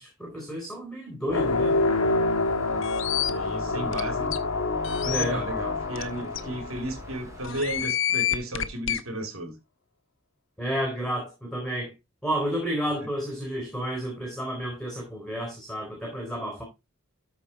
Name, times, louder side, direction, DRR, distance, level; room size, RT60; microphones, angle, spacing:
voice 1, 0.0-1.8 5.1-5.4 6.4-6.5 10.6-11.9 12.2-16.6, equal, 5° left, 3.8 m, -31 dB
sound 1, 1.3-7.4, left 3 dB, 80° left, 1.5 m, -27 dB
sound 2, 1.3-7.9, equal, 15° right, 3.3 m, -45 dB
sound 3, 2.8-3.3 3.9-4.0 4.3-4.4 4.8-5.2 6.0-6.1 6.4-6.5 7.4-9.0, left 11 dB, 60° left, 0.9 m, -28 dB
voice 2, 3.2-4.4 5.0-9.6, right 1 dB, 80° right, 3.3 m, -34 dB
13.5 x 5.2 x 4.3 m
head